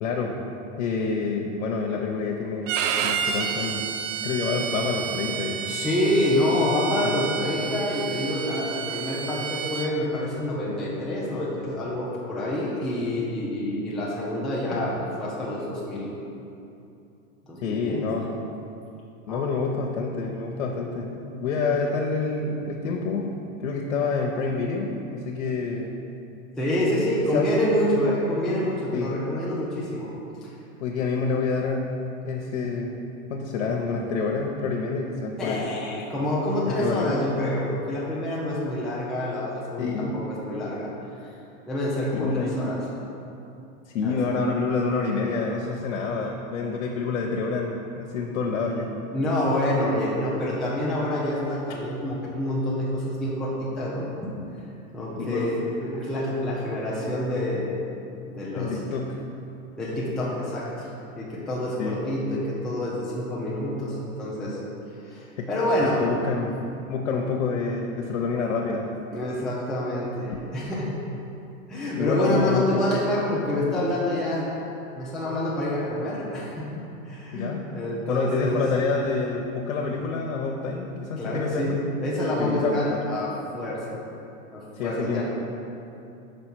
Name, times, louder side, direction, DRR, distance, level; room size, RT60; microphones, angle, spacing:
voice 1, 0.0-0.3 0.8-2.7 3.0-3.8 4.2-5.6 7.0-7.2 17.6-18.3 19.3-23.3 23.6-25.9 27.2-27.5 28.9-29.1 30.8-33.0 33.3-35.6 36.7-37.1 39.8-40.2 42.1-42.6 43.9-48.9 55.2-55.5 58.5-59.2 59.9-60.0 61.8-62.0 65.4-65.5 65.8-68.9 71.9-72.9 77.3-77.6 78.1-81.8 82.4-83.0 84.7-85.2, left 4 dB, 90° left, 0 dB, 0.7 m, -28 dB
Bowed string instrument, 2.7-9.9, right 8 dB, 65° right, 0.6 m, -30 dB
voice 2, 5.6-16.1 17.4-18.1 19.3-19.5 26.6-30.1 30.4-30.5 35.4-40.9 41.7-42.8 44.0-44.2 49.1-54.3 54.9-57.7 58.3-58.8 59.8-60.9 61.2-64.6 65.0-66.0 69.1-70.9 71.7-74.5 75.0-76.7 77.0-78.6 81.2-84.0 84.5-85.2, left 1 dB, ahead, -7 dB, 0.4 m, -27 dB
5.4 x 4.7 x 4.5 m, 2.8 s
supercardioid pair, 135°, 40 cm